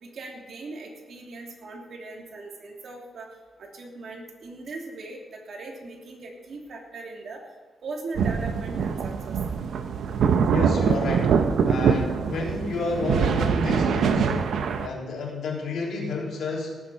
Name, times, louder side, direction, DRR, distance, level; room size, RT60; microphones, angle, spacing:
voice 1, 0.0-3.3 3.6-7.4 7.8-9.4, right 3 dB, 60° right, 0 dB, 3.0 m, -39 dB
sound 1, 8.1-14.9, right 6 dB, 80° right, 0.9 m, -23 dB
voice 2, 10.5-11.4 11.7-16.8, left 3 dB, 80° left, -2 dB, 3.7 m, -31 dB
18.0 x 7.4 x 5.7 m, 1.3 s
cardioid pair, 120°, 0 cm